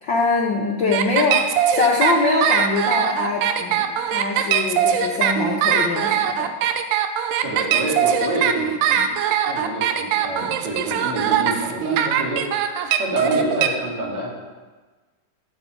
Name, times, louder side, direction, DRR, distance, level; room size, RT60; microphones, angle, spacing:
voice 1, 0.0-6.5, left 3 dB, 65° left, -1 dB, 1.1 m, -23 dB
sound 1, 0.9-13.7, right 8 dB, 85° right, 2.2 m, -21 dB
voice 2, 7.3-9.1 9.4-14.4, right 2 dB, 60° right, -5 dB, 4.2 m, -28 dB
15.0 x 8.0 x 4.7 m, 1.3 s
omnidirectional pair, 3.6 m